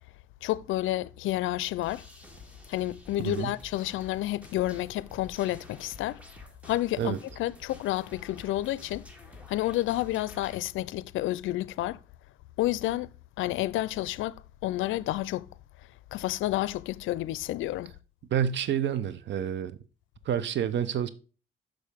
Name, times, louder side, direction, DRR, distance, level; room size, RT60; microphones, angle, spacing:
voice 1, 0.4-2.1 2.7-6.2 6.6-9.1 9.5-12.0 12.6-13.1 13.4-15.5 16.1-17.9, left 15 dB, 80° left, 0.4 m, -30 dB
sound 1, 1.8-10.6, left 2 dB, 5° right, 1.8 m, -50 dB
voice 2, 18.3-19.7 20.3-21.1, right 9 dB, 65° right, 0.7 m, -28 dB
6.5 x 6.4 x 3.5 m
cardioid pair, 90°, 20 cm